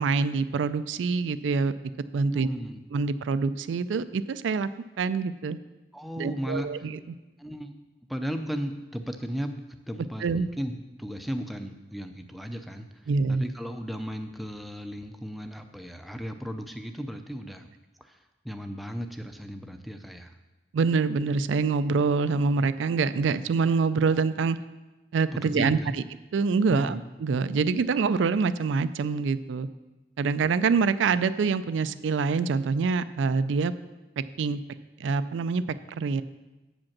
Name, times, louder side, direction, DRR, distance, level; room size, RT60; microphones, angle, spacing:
voice 1, 0.0-1.7 2.1-2.5 2.9-4.7 5.0-5.6 6.2-7.0 10.2-10.5 13.1-13.4 20.7-24.6 25.1-25.8 26.3-29.7 30.2-33.7 34.4-34.6 35.0-35.6 35.9-36.2, right 4 dB, 80° right, 13 dB, 0.4 m, -25 dB
voice 2, 2.3-2.8 5.9-6.7 7.4-7.8 8.1-10.7 11.0-13.0 13.3-17.7 18.0-18.2 18.4-20.3 25.3-26.0 26.7-27.0 27.5-27.6, equal, ahead, 6 dB, 0.4 m, -35 dB
7.3 x 5.2 x 7.2 m, 1.1 s
head